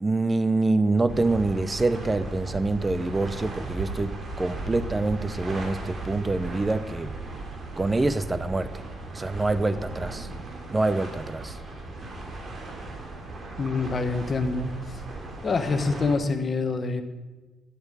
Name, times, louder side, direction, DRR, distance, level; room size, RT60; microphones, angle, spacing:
voice 1, 0.0-7.1 7.8-8.7 9.1-10.3 10.7-11.6, right 2 dB, 20° right, 14 dB, 0.6 m, -26 dB
sound 1, 1.1-16.2, right 2 dB, 40° right, 3.0 m, -37 dB
voice 2, 13.6-14.7 15.4-17.0, left 4 dB, 40° left, 8 dB, 1.6 m, -26 dB
12.0 x 11.5 x 5.4 m, 1.2 s
cardioid pair, 90°, 0 cm